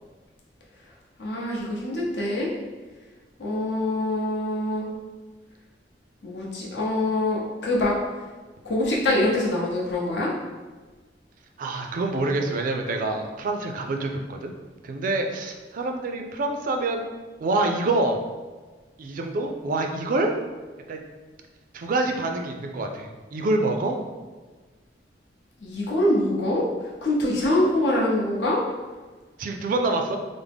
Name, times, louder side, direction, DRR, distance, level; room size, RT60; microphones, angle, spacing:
voice 1, 1.2-2.5 3.4-4.9 6.2-7.9 8.6-10.3 25.6-26.6 27.0-28.6, left 1 dB, 75° left, -4 dB, 0.8 m, -24 dB
voice 2, 11.6-14.5 14.8-17.0 17.4-18.2 19.0-20.3 20.9-21.0 21.7-24.0 29.4-30.2, right 2 dB, 50° right, 4 dB, 0.3 m, -26 dB
3.4 x 2.0 x 3.4 m, 1.3 s
head